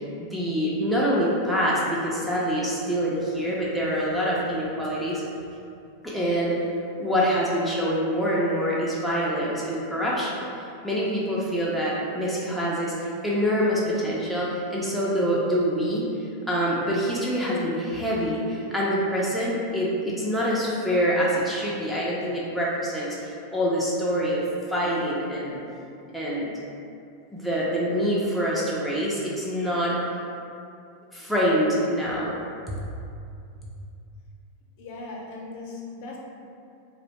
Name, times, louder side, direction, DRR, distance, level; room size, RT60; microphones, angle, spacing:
voice 1, 0.2-5.2 6.0-6.6 7.0-10.4 10.8-16.1 16.5-24.4 24.7-25.6 26.1-26.5 27.3-30.0 31.1-32.4 32.7-32.8, equal, ahead, -7 dB, 0.4 m, -25 dB
voice 2, 34.8-36.2, left 3 dB, 55° left, -2 dB, 0.6 m, -38 dB
2.4 x 2.1 x 2.8 m, 2.5 s
supercardioid pair, 130°, 0 cm